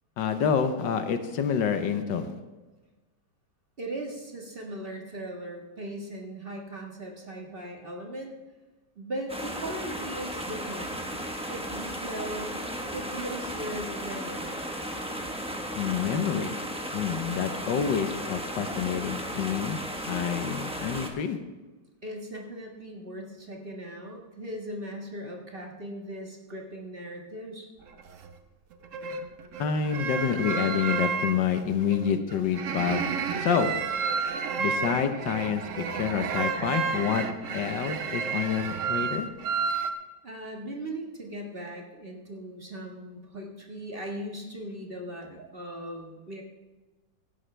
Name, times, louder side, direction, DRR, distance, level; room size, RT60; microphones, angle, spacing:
voice 1, 0.2-2.3 15.8-16.6 16.9-19.8 20.1-21.4 29.6-33.0 33.4-33.7 34.6-37.2 37.5-39.3, left 7 dB, 75° left, 8 dB, 1.6 m, -28 dB
voice 2, 3.8-8.3 9.0-10.9 11.5-12.7 12.9-14.5 22.0-27.7 39.7-39.8 40.2-46.4, right 1 dB, 30° right, 0 dB, 1.7 m, -38 dB
sound 1, 9.3-21.1, equal, 5° right, 0.8 m, -35 dB
sound 2, 27.9-28.3 28.8-39.9, right 5 dB, 55° right, 1.0 m, -31 dB
16.5 x 11.5 x 3.3 m, 1.2 s
omnidirectional pair, 2.0 m